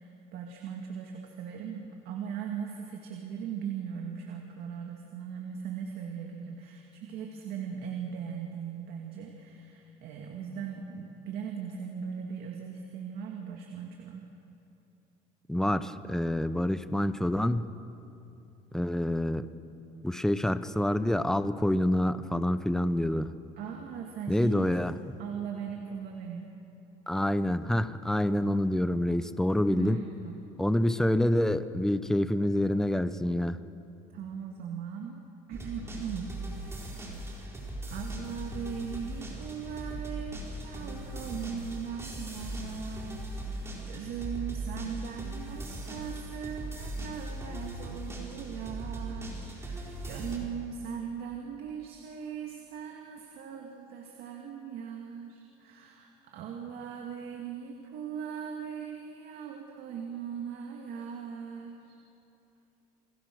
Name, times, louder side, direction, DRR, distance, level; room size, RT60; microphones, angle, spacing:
voice 1, 0.0-14.3 23.6-24.8 25.2-26.5 29.7-30.4 34.1-36.3 36.7-62.0, right 7 dB, 65° right, 1 dB, 2.6 m, -39 dB
voice 2, 15.5-17.6 18.7-19.5 20.0-23.3 24.3-25.0 27.1-30.0 30.6-33.6, left 1 dB, 5° left, 12 dB, 0.8 m, -27 dB
sound 1, 35.5-50.4, right 1 dB, 15° right, 4.2 m, -39 dB
29.5 x 21.5 x 6.4 m, 2.9 s
cardioid pair, 135°, 17 cm